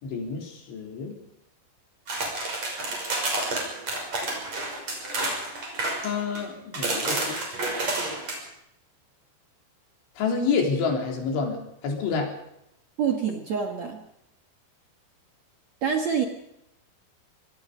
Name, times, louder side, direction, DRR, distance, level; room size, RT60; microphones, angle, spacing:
voice 1, 0.0-1.1 6.0-7.4 10.2-12.3, left 5 dB, 85° left, 2 dB, 6.2 m, -28 dB
sound 1, 2.1-6.4 6.7-8.4, right 2 dB, 35° right, 6.9 m, -29 dB
voice 2, 13.0-14.0 15.8-16.2, right 7 dB, 55° right, 4 dB, 2.2 m, -26 dB
25.0 x 20.5 x 5.2 m, 0.79 s
omnidirectional pair, 5.3 m